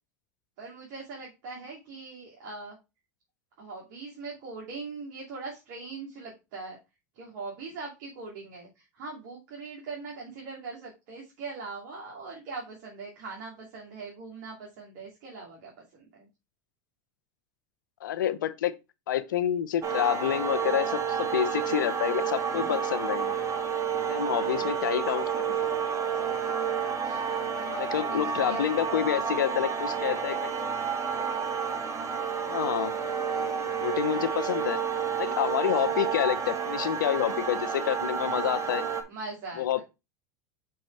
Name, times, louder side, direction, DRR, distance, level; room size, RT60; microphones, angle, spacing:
voice 1, 0.6-2.8 3.6-6.8 7.1-16.3 24.3-24.7 26.8-28.6 32.8-33.1 39.1-39.8, right 3 dB, 65° right, 2.6 m, -41 dB
voice 2, 18.0-18.8 19.1-23.3 24.1-25.6 27.8-30.5 32.5-32.9 33.8-34.8 35.2-38.8 39.6-39.8, left 11 dB, 90° left, 0.7 m, -28 dB
sound 1, 19.8-39.0, right 7 dB, 30° right, 1.5 m, -30 dB
6.3 x 5.5 x 3.3 m
hypercardioid pair, 100°, 10 cm